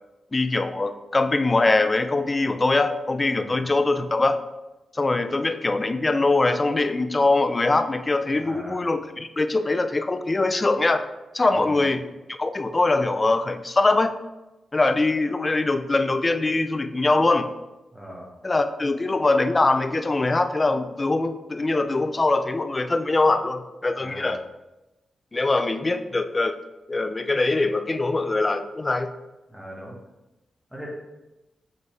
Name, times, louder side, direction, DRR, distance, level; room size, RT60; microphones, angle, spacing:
voice 1, 0.3-4.4 4.9-11.0 11.3-12.0 12.3-14.1 14.7-17.5 18.4-24.4 25.3-26.6 26.9-29.1, left 2 dB, 35° left, 9 dB, 0.5 m, -22 dB
voice 2, 3.3-3.7 8.4-8.8 11.5-11.8 17.9-18.3 24.0-24.3 29.5-30.0 30.7-30.9, equal, 10° right, -5 dB, 1.8 m, -40 dB
7.0 x 4.0 x 3.3 m, 1.0 s
supercardioid pair, 50°, 0 cm